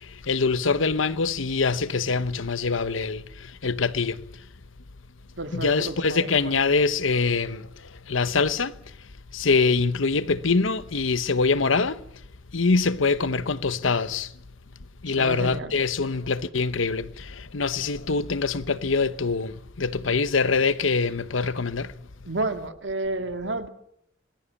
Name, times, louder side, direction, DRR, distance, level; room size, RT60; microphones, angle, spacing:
voice 1, 0.0-4.2 5.5-7.7 8.1-8.7 9.3-12.0 12.5-14.3 15.0-21.9, left 4 dB, 85° left, 1.0 m, -24 dB
voice 2, 5.4-6.6 15.1-15.7 22.3-23.7, right 2 dB, 70° right, 2.1 m, -31 dB
27.0 x 20.0 x 7.2 m
head